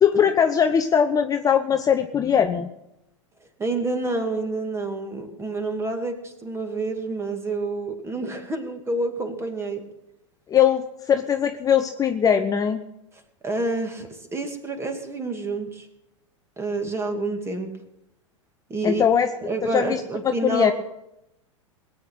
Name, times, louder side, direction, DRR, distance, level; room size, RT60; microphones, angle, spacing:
voice 1, 0.0-2.7 10.5-12.8 18.8-19.3 19.6-20.0 20.4-20.7, left 8 dB, 20° left, 7 dB, 0.7 m, -20 dB
voice 2, 3.6-9.8 13.4-15.9 16.6-17.7 18.7-19.0 19.4-20.7, right 2 dB, 15° right, 6 dB, 2.3 m, -28 dB
20.5 x 8.7 x 6.3 m, 0.88 s
figure-of-eight pair, 90°, 17 cm